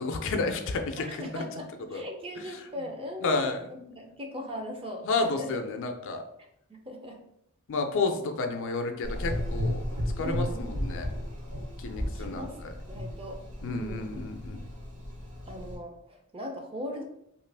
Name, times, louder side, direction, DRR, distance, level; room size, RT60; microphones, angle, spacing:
voice 1, 0.0-1.4 1.9-2.0 3.2-3.7 5.0-6.2 7.7-9.9 10.2-11.1 11.8-12.7 13.6-14.6, left 3 dB, 60° left, 6 dB, 0.4 m, -31 dB
voice 2, 1.0-5.6 6.7-7.2 10.2-10.7 12.1-12.6 12.9-13.4 13.6-14.1 15.4-17.0, left 1 dB, 25° right, 2 dB, 0.5 m, -39 dB
Gurgling / Engine, 9.0-15.8, equal, 80° right, 1.4 m, -34 dB
2.9 x 2.5 x 3.3 m, 0.77 s
head